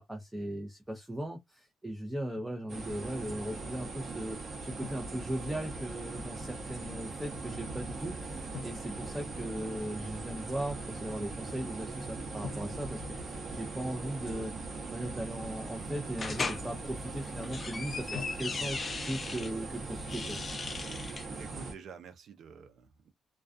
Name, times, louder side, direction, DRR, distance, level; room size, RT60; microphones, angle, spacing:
voice 1, 0.0-14.6 14.9-18.8 19.1-20.4, right 1 dB, 10° right, 0.6 m, -38 dB
Drum, 2.4-2.6 4.8-6.0 8.5-9.9 12.4-14.1 18.1-19.1, left 7 dB, 80° left, 0.7 m, -49 dB
sound 1, 2.7-21.7, right 3 dB, 45° right, 0.9 m, -40 dB
sound 2, 16.2-16.6 17.3-19.5 20.0-21.2, left 4 dB, 35° left, 0.6 m, -37 dB
voice 2, 21.0-23.1, right 7 dB, 65° right, 0.5 m, -49 dB
2.3 x 2.2 x 2.5 m
cardioid pair, 90°, 0 cm